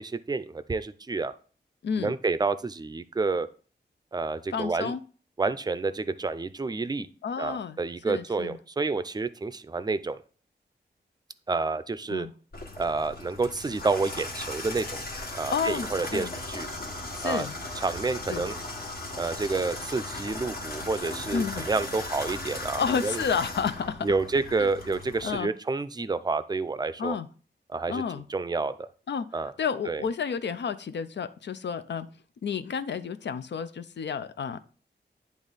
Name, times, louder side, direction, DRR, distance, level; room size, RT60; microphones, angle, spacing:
voice 1, 0.0-1.3 2.0-3.5 4.1-4.9 5.4-7.1 7.4-10.2 11.5-12.3 12.8-15.0 15.3-16.7 17.2-17.5 17.8-18.5 19.2-23.2 24.0-27.2 27.7-28.9 29.3-29.5 29.9-30.0, right 3 dB, 20° right, 13 dB, 0.4 m, -29 dB
voice 2, 1.8-2.2 4.5-5.0 7.2-7.8 8.0-8.6 12.1-12.3 15.5-16.3 17.1-17.5 18.3-18.5 21.3-21.7 22.8-24.1 24.5-24.7 25.2-25.5 27.0-27.3 27.9-28.2 29.1-29.3 29.6-32.1 32.4-34.6, left 6 dB, 80° left, 11 dB, 0.6 m, -30 dB
Water tap faucet / Bathtub (filling or washing), 12.5-25.3, left 2 dB, 60° left, 1.6 m, -37 dB
10.5 x 3.6 x 4.0 m, 0.40 s
wide cardioid pair, 120°, 18 cm